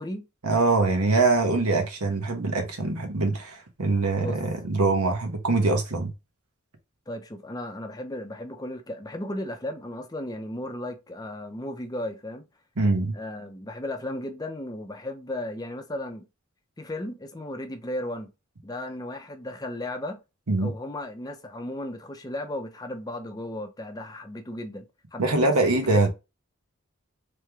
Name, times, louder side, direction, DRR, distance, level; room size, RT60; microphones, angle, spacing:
voice 1, 0.4-6.1 12.8-13.1 20.5-20.7 25.2-26.1, right 3 dB, 90° right, 1.1 m, -23 dB
voice 2, 7.1-12.4 13.1-16.3 16.8-18.3 18.6-20.2 20.6-24.9 25.1-26.1, left 1 dB, 15° left, 0.5 m, -35 dB
3.3 x 3.2 x 3.4 m
head